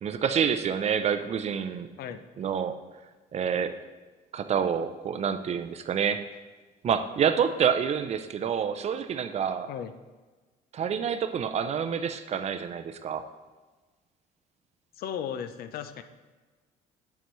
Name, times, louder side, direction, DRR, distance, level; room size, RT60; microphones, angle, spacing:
voice 1, 0.0-1.9 2.4-2.8 3.3-3.7 4.3-6.2 6.8-9.7 10.7-13.2, right 7 dB, 40° right, 9 dB, 0.4 m, -27 dB
voice 2, 15.0-16.0, left 8 dB, 65° left, 10 dB, 0.5 m, -35 dB
7.9 x 7.0 x 3.1 m, 1.3 s
cardioid pair, 110°, 17 cm